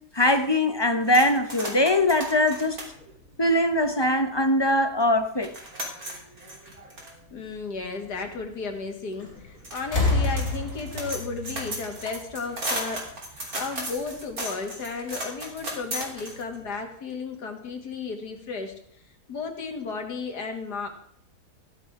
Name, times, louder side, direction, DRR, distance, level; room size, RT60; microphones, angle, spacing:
voice 1, 0.1-2.8 3.4-5.5, left 1 dB, 25° left, 0.6 m, -22 dB
sound 1, 1.0-4.2 4.7-4.8 5.0-16.7, right 1 dB, 65° right, 3.8 m, -36 dB
voice 2, 7.3-18.8 19.3-20.9, left 4 dB, 85° left, 2.5 m, -34 dB
sound 2, 9.2-9.5 9.8-12.6 13.7-13.8, left 3 dB, 45° left, 3.7 m, -28 dB
15.0 x 13.0 x 3.7 m
omnidirectional pair, 1.7 m